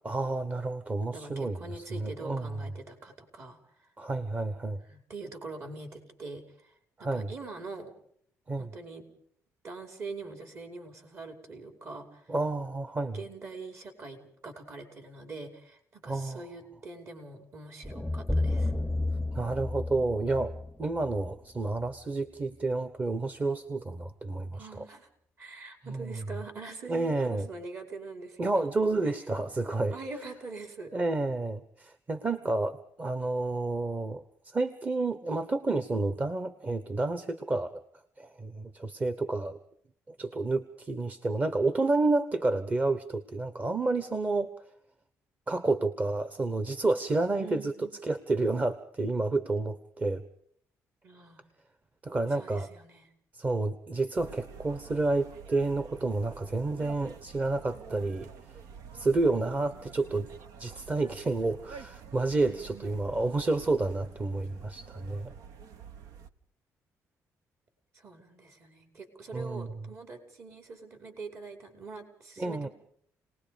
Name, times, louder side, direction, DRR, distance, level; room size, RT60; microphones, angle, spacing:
voice 1, 0.0-2.5 4.0-4.8 7.0-7.3 8.5-8.7 12.3-13.2 16.1-16.4 19.3-24.8 25.9-26.2 26.9-27.5 28.4-30.0 30.9-37.8 38.2-39.5 40.1-44.5 45.5-50.2 52.0-52.7 53.3-58.3 58.9-60.3 60.6-65.3 69.3-69.7 72.4-72.7, right 2 dB, 25° right, 11 dB, 1.2 m, -30 dB
voice 2, 1.1-3.6 4.9-6.7 7.0-7.9 8.6-9.0 9.6-12.3 13.1-18.7 24.5-25.1 25.4-28.6 29.0-29.1 29.9-30.9 47.3-47.9 51.0-51.4 52.3-53.1 59.7-60.2 62.5-62.9 67.9-72.7, right 3 dB, 50° right, 5 dB, 5.4 m, -44 dB
sound 1, 17.8-22.0, left 2 dB, ahead, 0.9 m, -32 dB
sound 2, 54.2-66.3, right 7 dB, 80° right, 1.2 m, -48 dB
29.5 x 19.5 x 5.3 m, 0.66 s
cardioid pair, 110°, 6 cm